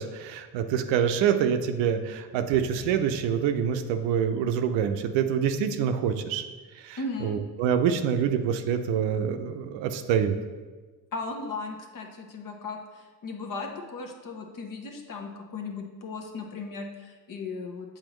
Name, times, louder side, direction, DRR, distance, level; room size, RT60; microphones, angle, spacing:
voice 1, 0.0-6.4 6.8-10.3, right 8 dB, 70° right, 8 dB, 0.6 m, -26 dB
voice 2, 7.0-7.4 11.1-18.0, left 3 dB, 45° left, 3 dB, 1.1 m, -37 dB
7.7 x 4.2 x 3.0 m, 1.3 s
hypercardioid pair, 50°, 47 cm